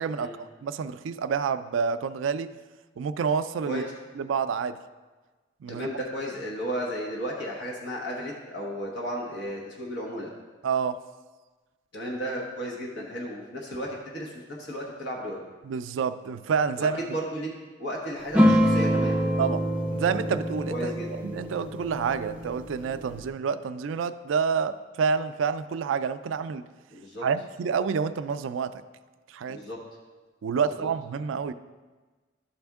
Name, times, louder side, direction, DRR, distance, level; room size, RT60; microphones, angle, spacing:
voice 1, 0.0-2.5 3.0-3.8 4.2-4.8 5.6-5.9 10.6-11.0 15.6-17.0 19.4-19.6 19.9-26.7 27.2-28.8 29.3-29.6 30.4-31.5, right 6 dB, 80° right, 12 dB, 0.3 m, -28 dB
voice 2, 5.7-10.3 11.9-15.4 16.8-17.5 17.8-19.2 20.7-21.1 26.9-27.2 29.5-29.8 30.6-30.9, equal, 60° left, -2 dB, 1.1 m, -34 dB
sound 1, 18.3-23.3, equal, 5° right, 0.5 m, -25 dB
11.5 x 4.3 x 3.5 m, 1.3 s
head